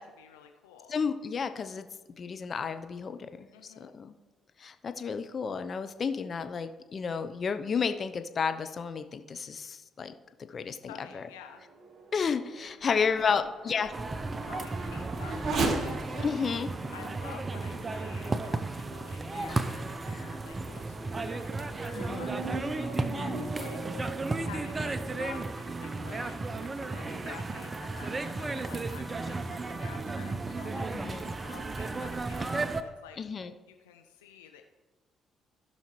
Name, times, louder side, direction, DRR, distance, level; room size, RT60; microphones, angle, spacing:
voice 1, 0.0-0.9 3.5-3.9 10.9-11.6 12.8-13.9 14.4-16.3 16.9-33.2 33.7-34.6, left 9 dB, 85° left, 5 dB, 0.4 m, -50 dB
voice 2, 0.9-1.9 2.2-4.1 4.6-10.1 10.5-11.2 12.1-13.9 16.2-16.7 21.9-22.3 30.9-31.3 33.2-33.5, left 6 dB, 50° left, 9 dB, 0.7 m, -32 dB
Race car auto racing / Accelerating revving vroom, 11.3-19.2 19.8-19.9 20.5-25.3, right 3 dB, 50° right, 1.4 m, -39 dB
sound 1, 13.9-32.8, right 3 dB, 30° right, 0.6 m, -34 dB
16.0 x 5.6 x 3.2 m, 1.2 s
hypercardioid pair, 50°, 0 cm